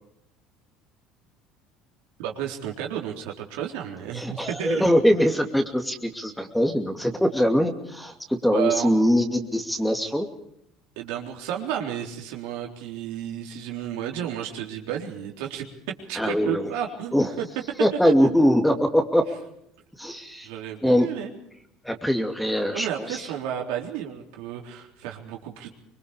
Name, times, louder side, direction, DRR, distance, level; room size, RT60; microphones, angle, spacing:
voice 1, 2.2-4.8 8.5-8.9 11.0-15.7 16.1-17.5 20.4-21.3 22.7-25.7, right 10 dB, 80° right, 1 dB, 3.8 m, -32 dB
voice 2, 4.1-10.3 16.1-16.7 17.1-17.3 17.8-19.2 20.0-20.5 20.8-21.1 21.8-23.3, equal, 5° left, 5 dB, 2.5 m, -22 dB
25.0 x 21.5 x 5.1 m, 0.77 s
supercardioid pair, 100°, 0 cm